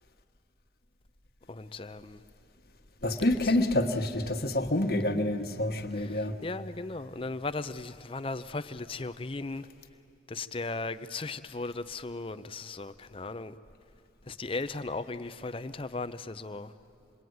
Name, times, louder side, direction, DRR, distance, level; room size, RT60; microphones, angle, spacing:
voice 1, 1.5-2.2 3.4-3.6 5.9-9.7 10.3-13.6 14.3-16.7, left 3 dB, 30° left, 12 dB, 0.6 m, -37 dB
voice 2, 3.0-6.3, left 1 dB, 60° left, 5 dB, 1.5 m, -27 dB
27.0 x 22.5 x 9.4 m, 2.7 s
head